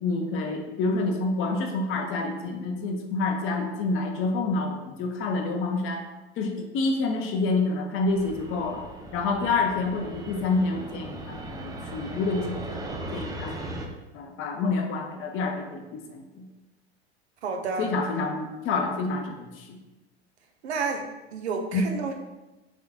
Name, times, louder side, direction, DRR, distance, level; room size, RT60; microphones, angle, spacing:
voice 1, 0.0-6.0 6.4-8.9 9.1-13.8 14.1-16.5 17.8-19.8 21.7-21.8, left 3 dB, 40° left, 3 dB, 0.8 m, -28 dB
Fixed-wing aircraft airplane, 8.1-13.9, right 1 dB, 10° right, 0.5 m, -38 dB
voice 2, 17.4-17.9 20.6-21.1 21.3-22.1, right 4 dB, 80° right, 4 dB, 0.8 m, -30 dB
3.8 x 3.7 x 3.6 m, 1.1 s
hypercardioid pair, 95°, 33 cm